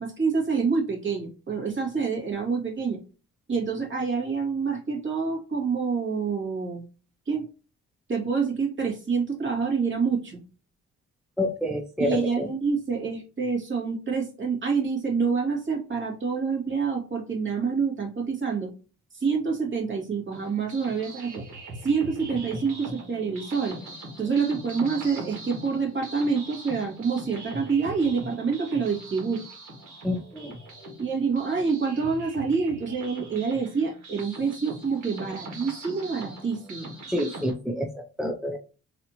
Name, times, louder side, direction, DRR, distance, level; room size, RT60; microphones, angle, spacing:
voice 1, 0.0-3.0 3.5-6.8 7.3-7.4 8.1-10.4 12.0-18.7 19.1-21.4 21.8-23.8 24.2-29.5 31.0-36.9, right 5 dB, 40° right, -1 dB, 2.2 m, -27 dB
voice 2, 11.4-12.5 30.0-30.5 37.1-38.6, left 1 dB, ahead, 3 dB, 0.5 m, -28 dB
sound 1, 20.3-37.5, right 1 dB, 70° right, 1.6 m, -41 dB
4.0 x 2.8 x 3.0 m, 0.35 s
cardioid pair, 90°, 30 cm